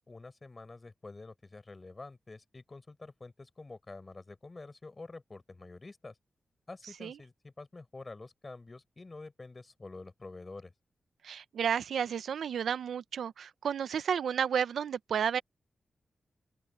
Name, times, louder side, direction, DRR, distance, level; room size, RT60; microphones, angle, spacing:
voice 1, 0.0-6.2 6.7-10.7, left 3 dB, 35° left, 5.4 m, -48 dB
voice 2, 11.2-15.4, right 7 dB, 85° right, 0.7 m, -32 dB
open air
cardioid pair, 75°, 0 cm